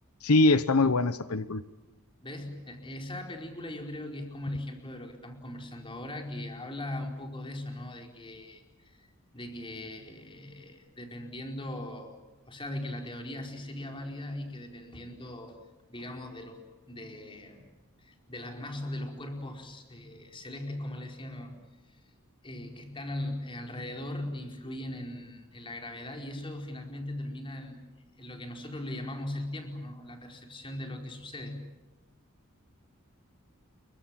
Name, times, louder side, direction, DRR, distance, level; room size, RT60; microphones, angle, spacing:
voice 1, 0.2-1.6, left 2 dB, 85° left, 13 dB, 1.0 m, -23 dB
voice 2, 2.2-9.1 9.3-12.2 12.5-15.6 15.9-16.6 16.9-17.6 18.0-21.5 22.4-27.8 28.2-31.6, left 1 dB, 25° left, 3 dB, 4.7 m, -39 dB
29.0 x 23.5 x 7.6 m, 1.1 s
head